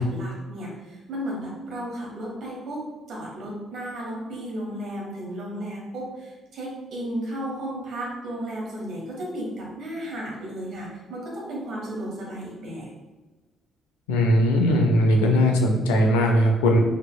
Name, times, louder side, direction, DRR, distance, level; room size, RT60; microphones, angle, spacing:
voice 1, 0.0-12.9, right 1 dB, 65° right, -3 dB, 1.2 m, -34 dB
voice 2, 14.1-16.8, equal, 85° left, 2 dB, 0.4 m, -19 dB
4.0 x 2.7 x 2.2 m, 1.2 s
hypercardioid pair, 50°, 0 cm